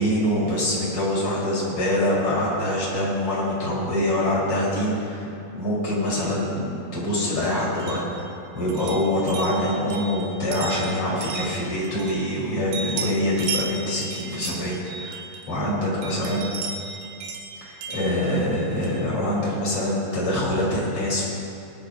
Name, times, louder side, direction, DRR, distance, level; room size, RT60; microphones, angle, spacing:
voice 1, 0.0-5.3 5.5-8.0 8.5-15.1 15.5-16.5 17.6-21.2, left 1 dB, 35° left, -6 dB, 3.4 m, -24 dB
sound 1, 7.8-12.4 12.7-15.6 16.0-19.1, right 5 dB, 80° right, 3.2 m, -35 dB
21.0 x 12.5 x 2.3 m, 2.7 s
omnidirectional pair, 4.9 m